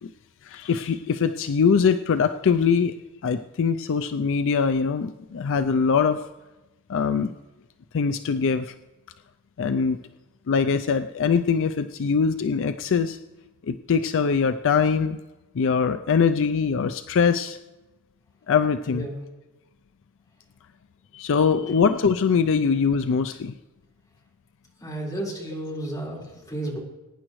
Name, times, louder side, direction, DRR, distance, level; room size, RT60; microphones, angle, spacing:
voice 1, 0.4-2.9 3.2-6.3 6.9-7.3 7.9-8.7 9.6-10.0 10.5-13.2 13.7-15.2 15.5-17.6 18.5-19.1 21.1-23.5, left 6 dB, 60° left, 10 dB, 0.4 m, -22 dB
voice 2, 18.9-19.2 21.5-21.7 24.8-26.8, right 1 dB, 15° left, -5 dB, 4.4 m, -33 dB
21.5 x 10.0 x 3.1 m, 1.1 s
head